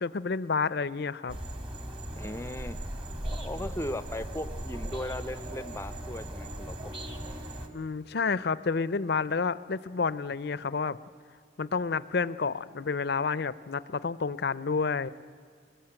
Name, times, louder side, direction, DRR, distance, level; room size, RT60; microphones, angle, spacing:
voice 1, 0.0-1.4 7.7-11.0 11.6-15.1, left 4 dB, 55° left, 17 dB, 0.5 m, -30 dB
sound 1, 1.3-7.7, right 1 dB, 25° right, 1.6 m, -38 dB
voice 2, 2.1-2.8 3.3-6.8, left 1 dB, 15° left, 12 dB, 0.6 m, -37 dB
24.5 x 20.0 x 8.9 m, 2.1 s
head